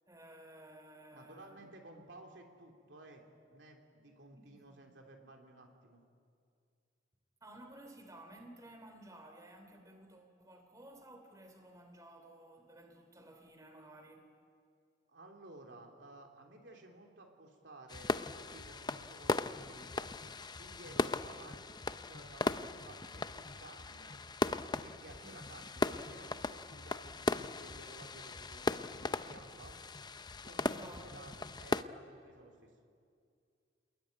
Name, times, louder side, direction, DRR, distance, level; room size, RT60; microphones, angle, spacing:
voice 1, 0.1-1.7 1.9-2.1 4.3-4.8 7.4-14.3 25.2-25.4 30.6-31.5, right 1 dB, 20° right, 3.0 m, -55 dB
voice 2, 1.1-3.2 3.5-6.0 15.1-21.6 22.1-24.2 24.7-29.8 30.4-32.7, right 2 dB, 70° right, 3.3 m, -55 dB
sound 1, 17.9-31.8, left 3 dB, 25° left, 0.6 m, -38 dB
29.0 x 21.0 x 9.6 m
head